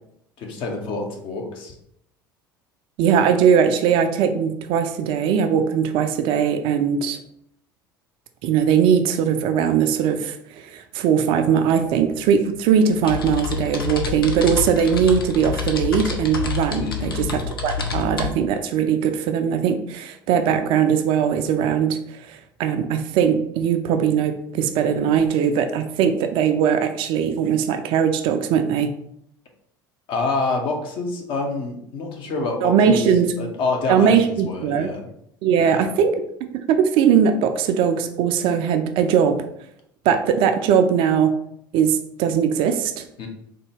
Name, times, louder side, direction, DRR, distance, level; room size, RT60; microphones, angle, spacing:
voice 1, 0.4-1.8 16.8-17.1 30.1-33.1 33.4-35.1 35.6-35.9 43.2-43.3, left 3 dB, 45° left, 2 dB, 0.7 m, -27 dB
voice 2, 3.0-7.2 8.4-28.9 32.6-33.3 33.9-34.9 35.4-36.1 36.4-39.4 40.1-41.4 41.7-43.0, right 7 dB, 45° right, 7 dB, 0.4 m, -20 dB
sound 1, 11.7-11.8 12.0-18.3, left 6 dB, 80° left, 0.4 m, -28 dB
3.6 x 2.2 x 3.4 m, 0.74 s
figure-of-eight pair, 65°, 12 cm